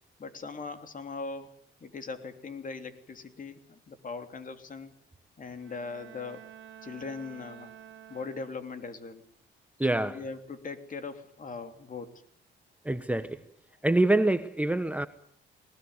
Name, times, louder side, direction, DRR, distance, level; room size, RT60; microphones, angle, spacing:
voice 1, 0.2-4.9 5.4-6.4 6.8-7.7 8.1-9.2 9.9-12.2, left 4 dB, 40° left, 3.3 m, -40 dB
Bowed string instrument, 5.5-8.9, right 9 dB, 80° right, 1.5 m, -50 dB
voice 2, 9.8-10.2 12.8-13.5 13.8-15.1, right 2 dB, 5° right, 1.1 m, -26 dB
21.0 x 19.5 x 9.6 m
cardioid pair, 90°, 20 cm